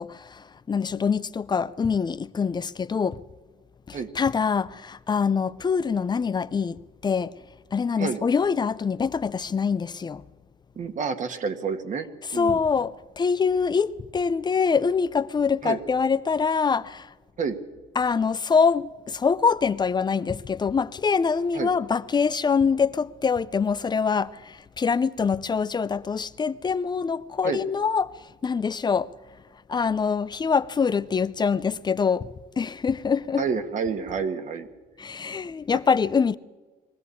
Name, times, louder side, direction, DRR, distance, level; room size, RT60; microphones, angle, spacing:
voice 1, 0.0-3.2 3.9-7.3 7.7-10.2 12.3-17.1 18.0-28.2 28.4-29.1 29.7-32.3 32.6-33.4 35.0-36.4, left 5 dB, 25° left, 0.6 m, -24 dB
voice 2, 10.8-12.1 12.3-12.6 15.6-15.8 17.4-17.6 21.5-21.7 27.4-27.6 33.4-34.7, right 5 dB, 45° right, 1.8 m, -29 dB
22.0 x 15.0 x 8.5 m
cardioid pair, 110°, 17 cm